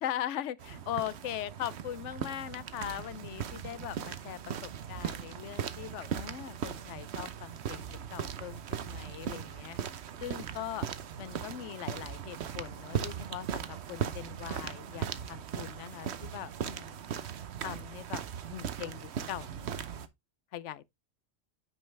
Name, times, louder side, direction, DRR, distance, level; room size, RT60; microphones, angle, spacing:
voice 1, 0.0-9.8 10.2-10.9 11.2-17.0 17.6-18.2 18.5-19.9 20.5-20.9, left 11 dB, 70° left, 1.0 m, -40 dB
sound 1, 0.6-20.1, right 8 dB, 60° right, 1.0 m, -38 dB
9.3 x 5.4 x 3.3 m
omnidirectional pair, 1.3 m